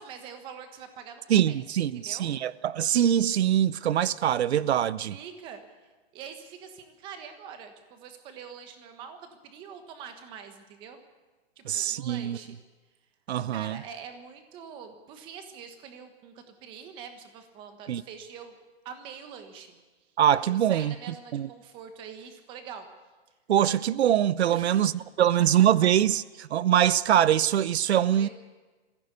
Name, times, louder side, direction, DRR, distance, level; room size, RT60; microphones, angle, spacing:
voice 1, 0.0-2.3 5.1-5.9 6.1-11.0 11.6-12.6 13.5-18.6 18.8-19.8 20.5-22.9 24.5-25.0 25.8-25.9 28.1-28.3, right 7 dB, 15° right, 1.2 m, -44 dB
voice 2, 1.3-5.2 11.7-12.4 13.3-13.8 17.9-18.0 20.2-20.9 21.3-21.5 23.5-24.9 25.2-28.3, right 10 dB, 85° right, 0.7 m, -23 dB
21.0 x 15.5 x 8.2 m
hypercardioid pair, 175°, 32 cm